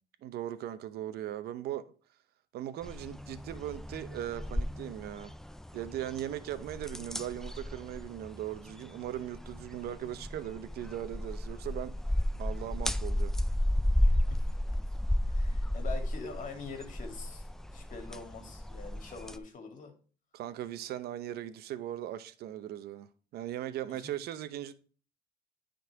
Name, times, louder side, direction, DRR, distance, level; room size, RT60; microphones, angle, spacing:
voice 1, 0.2-1.9 2.5-5.3 5.7-12.0 12.4-13.3 20.3-24.7, right 12 dB, 70° right, 0.7 m, -39 dB
sound 1, 2.8-19.4, left 1 dB, 5° left, 0.4 m, -33 dB
voice 2, 15.3-19.9 23.9-24.1, left 4 dB, 50° left, 2.1 m, -44 dB
9.4 x 3.9 x 4.7 m
cardioid pair, 110°, 17 cm